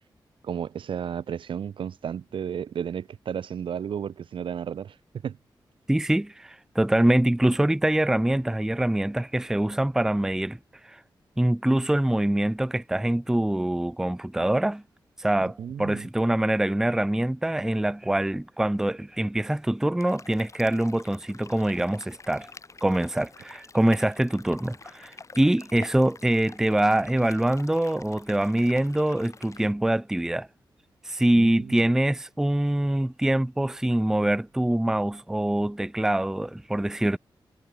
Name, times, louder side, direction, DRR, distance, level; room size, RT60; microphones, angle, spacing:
voice 1, 0.4-5.0 5.2-5.4 15.4-16.0 31.3-31.7, right 8 dB, 85° right, 1.7 m, -33 dB
voice 2, 5.9-10.6 10.8-11.0 11.4-14.8 15.2-22.5 22.8-30.5 31.0-37.2, right 1 dB, 5° right, 0.4 m, -24 dB
sound 1, 20.0-29.7, left 4 dB, 40° left, 2.7 m, -48 dB
wide cardioid pair, 100°, 8 cm